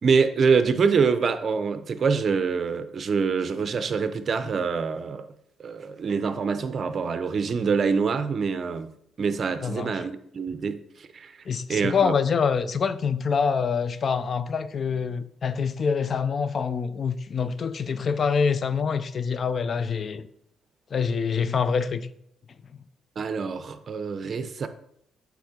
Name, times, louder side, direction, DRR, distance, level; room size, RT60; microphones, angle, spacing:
voice 1, 0.0-5.3 5.6-8.9 9.2-11.3 11.7-12.2 23.2-24.7, right 5 dB, 45° right, 11 dB, 0.5 m, -25 dB
voice 2, 9.6-10.0 11.5-20.3 20.9-22.1, left 6 dB, 45° left, 14 dB, 0.4 m, -25 dB
7.4 x 3.4 x 3.7 m, 0.72 s
cardioid pair, 90°, 0 cm